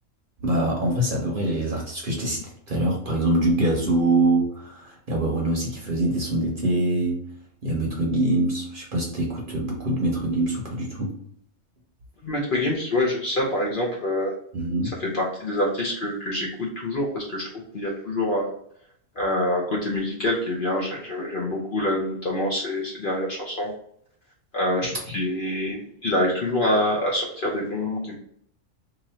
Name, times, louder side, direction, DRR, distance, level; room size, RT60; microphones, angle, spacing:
voice 1, 0.4-7.2 7.6-11.2 14.5-15.0, right 1 dB, 50° right, -2 dB, 0.9 m, -24 dB
voice 2, 12.2-14.3 15.0-17.4 17.7-18.5 19.2-23.7 24.5-28.2, left 1 dB, 50° left, -3 dB, 0.7 m, -26 dB
3.0 x 2.5 x 4.1 m, 0.66 s
omnidirectional pair, 1.3 m